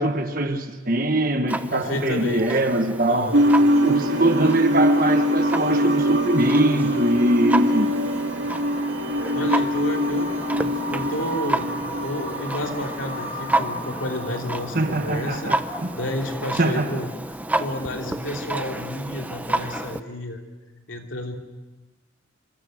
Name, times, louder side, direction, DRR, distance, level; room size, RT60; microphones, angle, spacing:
voice 1, 0.0-3.4 3.8-7.9 14.7-15.9 16.6-17.0, right 1 dB, 45° right, 1.4 m, -22 dB
Clock, 1.5-20.0, right 1 dB, 10° right, 0.8 m, -31 dB
voice 2, 1.7-2.6 3.1-3.4 4.4-4.5 9.3-15.5 15.9-20.4 20.9-21.4, left 1 dB, 75° left, 3.0 m, -31 dB
sound 1, 3.3-15.2, equal, 80° right, 2.4 m, -23 dB
27.5 x 25.5 x 6.4 m
head